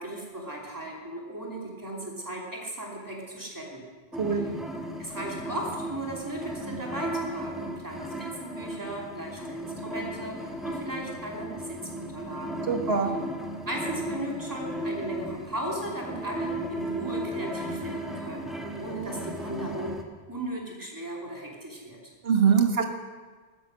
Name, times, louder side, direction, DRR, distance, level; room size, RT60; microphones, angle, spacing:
voice 1, 0.0-3.8 5.0-12.7 13.7-18.5 18.8-20.0 20.3-22.0, right 1 dB, 20° right, -2 dB, 2.9 m, -36 dB
sound 1, 4.1-20.0, right 1 dB, ahead, 1.3 m, -36 dB
voice 2, 12.7-13.1 22.2-22.8, right 6 dB, 70° right, 4 dB, 1.6 m, -23 dB
13.0 x 10.5 x 6.4 m, 1.4 s
omnidirectional pair, 1.0 m